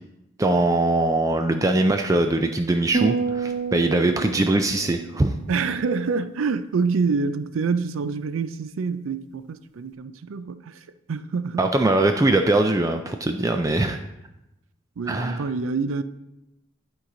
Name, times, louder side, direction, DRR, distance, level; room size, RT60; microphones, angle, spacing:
voice 1, 0.4-5.3 11.6-14.0 15.1-15.5, right 2 dB, 15° right, 0.3 m, -21 dB
sound 1, 2.9-6.4, right 5 dB, 40° right, 0.8 m, -30 dB
voice 2, 5.5-11.7 15.0-16.0, right 4 dB, 85° right, 0.4 m, -26 dB
11.0 x 4.7 x 3.8 m
head